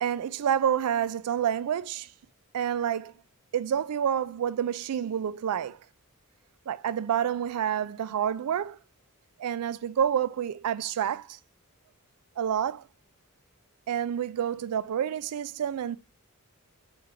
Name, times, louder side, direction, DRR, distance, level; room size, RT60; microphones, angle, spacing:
voice 1, 0.0-2.1 2.5-3.1 3.5-5.8 6.7-8.8 9.4-11.4 12.4-12.9 13.9-16.0, right 9 dB, 85° right, 0.4 m, -28 dB
4.3 x 3.2 x 3.7 m
head